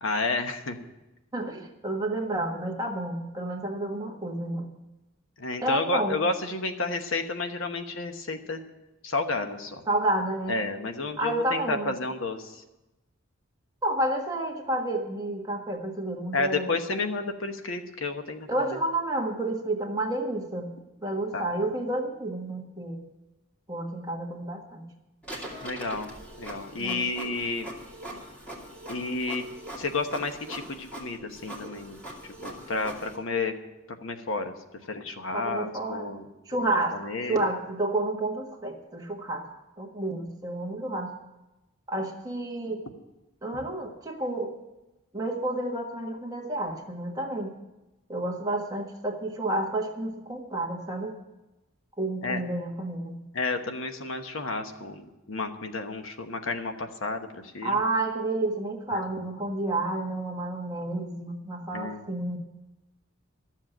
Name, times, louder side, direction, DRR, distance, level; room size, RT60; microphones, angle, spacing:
voice 1, 0.0-0.8 5.4-8.6 9.0-9.8 10.5-12.6 16.3-18.8 21.3-21.5 25.6-26.1 26.4-27.7 28.9-29.5 29.8-32.0 32.4-33.5 34.0-34.5 34.9-36.3 36.6-37.4 52.2-52.4 53.3-57.8 58.9-59.0 61.7-62.0, left 3 dB, 70° left, 6 dB, 1.1 m, -31 dB
voice 2, 1.3-4.7 5.6-6.2 9.9-10.6 11.2-11.9 13.8-17.0 18.5-20.7 21.0-23.0 23.7-24.9 26.8-27.1 35.3-36.1 36.5-39.5 39.8-41.1 41.9-42.8 43.4-44.5 45.1-47.5 48.1-51.2 52.0-53.2 57.6-62.4, right 2 dB, 20° right, 1 dB, 1.5 m, -30 dB
Printer, 25.2-33.2, right 1 dB, 5° left, 2.4 m, -42 dB
12.5 x 7.5 x 9.0 m, 1.0 s
head